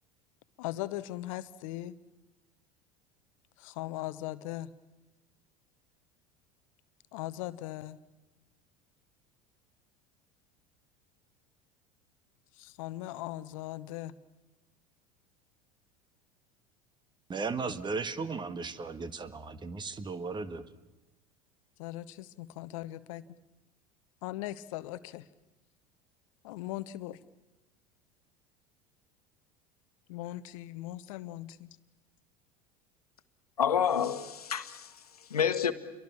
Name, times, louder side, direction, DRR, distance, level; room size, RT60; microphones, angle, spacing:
voice 1, 0.6-2.0 3.6-4.7 7.1-8.0 12.6-14.1 21.8-23.2 24.2-25.3 26.4-27.2 30.1-31.8, left 15 dB, 60° left, 1.0 m, -39 dB
voice 2, 17.3-20.7, right 4 dB, 25° right, 1.7 m, -36 dB
voice 3, 33.6-35.7, left 8 dB, 80° left, 1.4 m, -29 dB
29.0 x 23.5 x 7.3 m
figure-of-eight pair, 75°, 19 cm